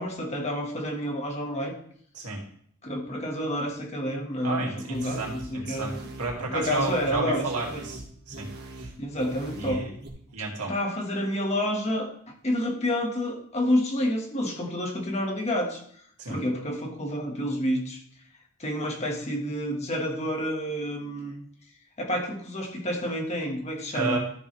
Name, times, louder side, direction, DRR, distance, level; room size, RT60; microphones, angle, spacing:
voice 1, 0.0-1.7 2.8-6.1 6.4-7.8 9.0-9.9 10.6-12.1 12.4-15.8 16.3-18.0 18.6-21.3 22.0-24.2, equal, 30° left, 1 dB, 1.6 m, -29 dB
voice 2, 4.4-8.5 8.7-8.9 9.5-9.9 10.3-10.7 16.2-16.4 23.9-24.2, right 3 dB, 85° right, -1 dB, 2.4 m, -32 dB
sound 1, 4.9-10.1, right 2 dB, 45° right, 1.8 m, -42 dB
13.5 x 6.9 x 3.4 m, 0.62 s
head